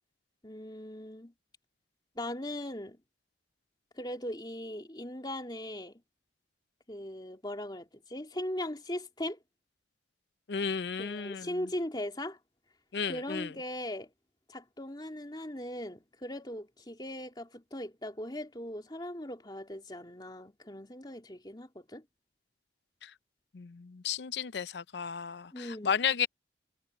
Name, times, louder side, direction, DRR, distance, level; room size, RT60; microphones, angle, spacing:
voice 1, 0.4-1.3 2.1-3.0 3.9-6.0 6.9-9.4 11.0-12.4 13.1-14.1 14.5-22.0 25.5-26.0, left 1 dB, 25° left, 3.1 m, -39 dB
voice 2, 10.5-11.6 12.9-13.5 23.0-23.1 23.5-26.3, left 7 dB, 75° left, 0.6 m, -33 dB
head